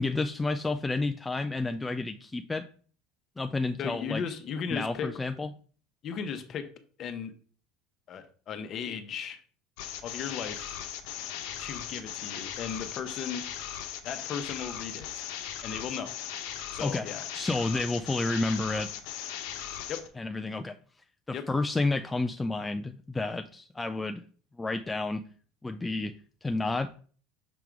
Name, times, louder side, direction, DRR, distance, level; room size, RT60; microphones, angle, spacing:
voice 1, 0.0-2.6 3.4-4.2 4.7-5.5 16.8-17.1 17.3-18.9 20.2-20.8 21.5-24.2 24.6-25.2 25.6-26.1 26.4-26.9, left 2 dB, 10° left, 7 dB, 0.3 m, -30 dB
voice 2, 3.8-5.1 6.0-6.7 7.0-7.3 8.1-9.4 10.0-10.7 11.6-13.5 14.0-15.1 15.6-16.1 16.7-17.2 19.9-20.1 21.3-21.5, left 7 dB, 40° left, 9 dB, 0.9 m, -36 dB
sound 1, 9.8-20.1, left 10 dB, 75° left, 0.9 m, -38 dB
6.1 x 3.6 x 4.6 m, 0.43 s
supercardioid pair, 125°, 0 cm